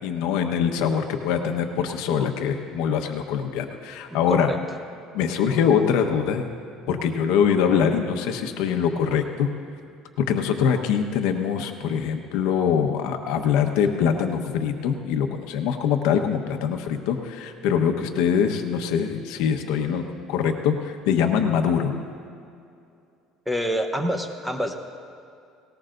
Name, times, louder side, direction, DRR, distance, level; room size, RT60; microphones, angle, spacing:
voice 1, 0.0-4.5 5.1-6.5 6.9-9.5 10.3-20.0 20.3-21.9, left 7 dB, 80° left, 5 dB, 1.1 m, -23 dB
voice 2, 4.3-4.6 23.5-24.7, equal, 5° right, 5 dB, 0.9 m, -26 dB
19.0 x 19.0 x 2.6 m, 2.5 s
cardioid pair, 140°, 0 cm